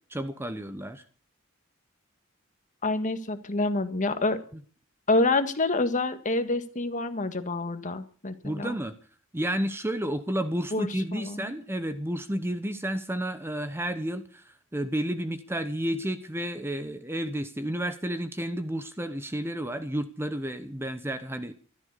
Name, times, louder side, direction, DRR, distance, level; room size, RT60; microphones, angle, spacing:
voice 1, 0.1-1.0 8.4-9.0 9.3-21.5, right 1 dB, 10° right, 10 dB, 0.9 m, -31 dB
voice 2, 2.8-4.4 5.1-8.8 10.7-11.5, left 2 dB, 35° left, 9 dB, 1.7 m, -27 dB
15.0 x 13.0 x 6.8 m, 0.43 s
head